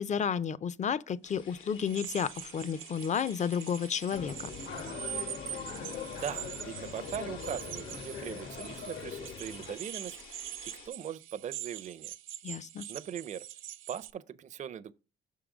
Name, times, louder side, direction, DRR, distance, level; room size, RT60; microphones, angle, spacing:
voice 1, 0.0-4.5 12.4-12.9, left 7 dB, 35° left, 0.5 m, -32 dB
sound 1, 1.2-10.9, left 6 dB, 90° left, 2.0 m, -52 dB
sound 2, 1.8-14.1, right 12 dB, 85° right, 0.6 m, -44 dB
sound 3, 4.1-9.7, left 6 dB, 70° left, 1.2 m, -41 dB
voice 2, 6.1-10.2 10.7-12.1 12.9-13.5 13.9-14.9, right 8 dB, 40° right, 0.4 m, -40 dB
6.7 x 3.7 x 6.0 m
cardioid pair, 90°, 20 cm